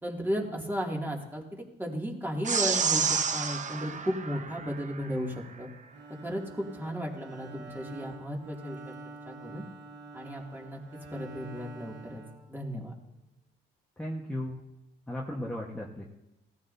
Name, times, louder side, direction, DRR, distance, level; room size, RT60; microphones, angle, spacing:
voice 1, 0.0-5.7 6.2-8.9 9.2-9.6 10.1-10.8 11.1-12.2 12.5-12.9, equal, 10° right, -1 dB, 2.6 m, -35 dB
sound 1, 2.4-5.1, right 5 dB, 40° right, 0.8 m, -29 dB
Bowed string instrument, 5.9-13.1, right 3 dB, 65° right, 1.8 m, -47 dB
voice 2, 14.0-14.6 15.1-16.1, left 1 dB, 5° left, -3 dB, 1.4 m, -35 dB
18.0 x 14.0 x 2.8 m, 0.94 s
cardioid pair, 90°, 20 cm